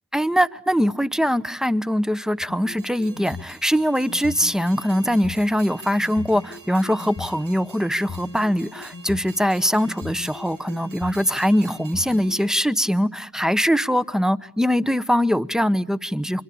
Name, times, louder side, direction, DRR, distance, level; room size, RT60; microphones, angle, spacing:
voice 1, 0.1-16.4, equal, ahead, 1.1 m, -22 dB
sound 1, 2.4-3.5 4.1-5.4 6.0-7.3 7.9-9.3 9.8-11.2 11.8-12.4, left 5 dB, 45° left, 1.5 m, -38 dB
Train, 2.7-12.5, right 4 dB, 90° right, 5.6 m, -47 dB
25.0 x 23.5 x 8.6 m
cardioid pair, 40°, 32 cm